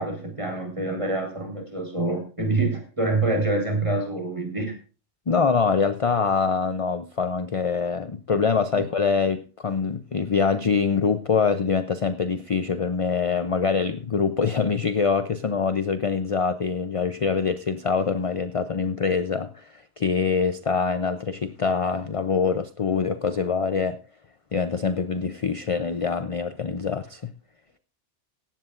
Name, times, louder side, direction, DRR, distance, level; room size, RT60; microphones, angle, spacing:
voice 1, 0.0-4.7, right 2 dB, 25° right, 4.4 m, -26 dB
voice 2, 5.3-24.0 24.5-27.3, left 5 dB, 35° left, 0.6 m, -24 dB
17.5 x 15.0 x 2.5 m
omnidirectional pair, 1.2 m